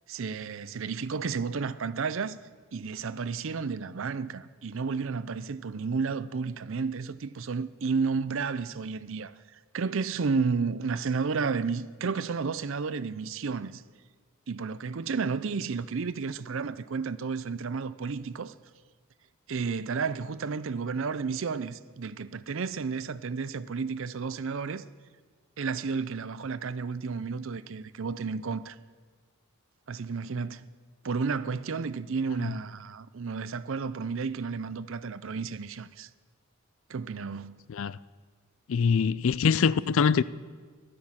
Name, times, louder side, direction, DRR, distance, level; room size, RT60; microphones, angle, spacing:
voice 1, 0.1-2.4 2.7-9.3 9.7-13.8 14.5-18.5 19.5-24.8 25.6-28.8 29.9-30.6 31.0-36.1 36.9-37.6, right 5 dB, 60° right, 0.5 m, -32 dB
voice 2, 38.7-40.2, left 6 dB, 65° left, 0.4 m, -23 dB
14.5 x 12.0 x 7.4 m
head